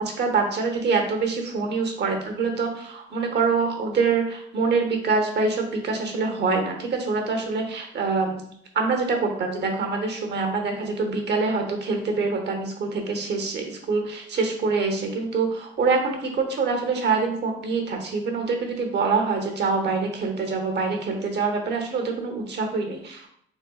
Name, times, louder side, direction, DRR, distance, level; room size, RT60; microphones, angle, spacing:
voice 1, 0.0-8.4 8.7-23.3, right 4 dB, 60° right, 3 dB, 0.9 m, -25 dB
4.1 x 3.4 x 2.3 m, 0.68 s
cardioid pair, 90°, 20 cm